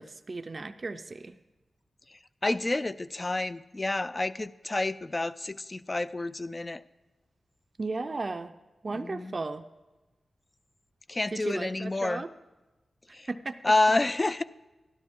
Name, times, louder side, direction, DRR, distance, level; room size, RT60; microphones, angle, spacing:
voice 1, 0.0-1.3 7.8-8.5 8.8-9.6 11.3-12.3 13.3-13.6, right 3 dB, 45° right, 8 dB, 0.5 m, -35 dB
voice 2, 2.1-6.8 8.9-9.3 11.1-12.2 13.1-13.3 13.6-14.4, left 2 dB, 30° left, 15 dB, 0.4 m, -29 dB
12.5 x 12.0 x 3.6 m, 1.1 s
wide cardioid pair, 80°, 0 cm